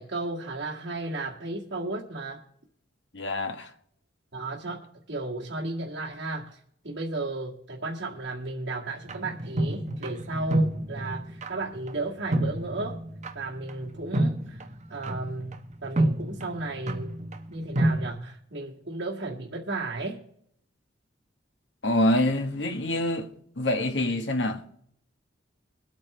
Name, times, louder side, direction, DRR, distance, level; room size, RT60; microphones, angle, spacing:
voice 1, 0.0-2.4 4.3-6.6 6.8-13.0 13.3-14.6 14.9-17.2 17.5-20.2, right 2 dB, 70° right, 2.0 m, -34 dB
voice 2, 3.1-3.7 21.8-23.3 23.6-24.8, left 1 dB, 65° left, 1.4 m, -26 dB
sound 1, 9.1-18.1, right 1 dB, 35° right, 1.0 m, -30 dB
22.5 x 8.8 x 3.3 m
head